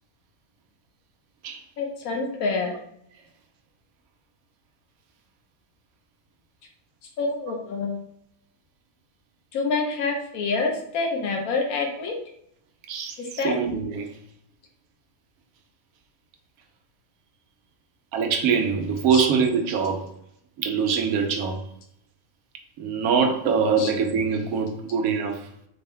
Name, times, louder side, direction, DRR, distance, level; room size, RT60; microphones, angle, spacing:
voice 1, 1.8-2.8 7.2-8.0 9.5-12.1 13.2-13.6 19.1-19.3 23.8-23.9, left 4 dB, 90° left, 1 dB, 1.2 m, -27 dB
voice 2, 13.4-14.1 18.1-20.1 20.6-21.6 22.8-25.5, right 6 dB, 85° right, 5 dB, 1.1 m, -23 dB
4.1 x 2.1 x 3.4 m, 0.72 s
omnidirectional pair, 1.5 m